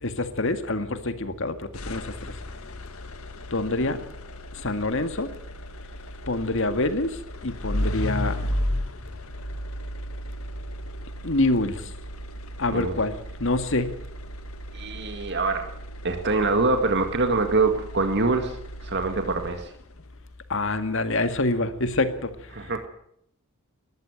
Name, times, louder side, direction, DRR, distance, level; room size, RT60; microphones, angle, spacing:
voice 1, 0.0-2.3 3.5-4.1 4.6-5.3 6.3-8.4 11.2-11.9 12.6-13.9 20.5-22.3, left 2 dB, 65° left, 9 dB, 2.0 m, -26 dB
sound 1, 1.7-20.0, equal, 80° left, 1.9 m, -35 dB
voice 2, 14.7-15.7 16.0-19.7 22.5-22.8, right 3 dB, 55° right, 6 dB, 2.1 m, -24 dB
21.0 x 13.5 x 9.1 m, 0.70 s
head